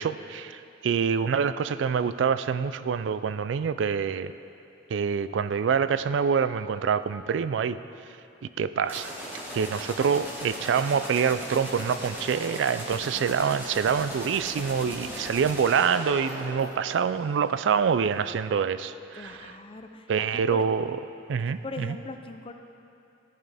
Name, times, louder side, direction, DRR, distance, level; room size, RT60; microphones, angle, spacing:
voice 1, 0.0-4.3 4.9-7.8 8.6-9.1 9.5-19.5 20.1-21.0 21.3-22.0, right 6 dB, 70° right, 13 dB, 0.3 m, -26 dB
sound 1, 8.8-17.5, equal, 10° right, 1.6 m, -38 dB
voice 2, 19.1-20.6 21.4-22.5, left 3 dB, 30° left, 6 dB, 0.5 m, -41 dB
14.5 x 10.5 x 3.4 m, 2.7 s
head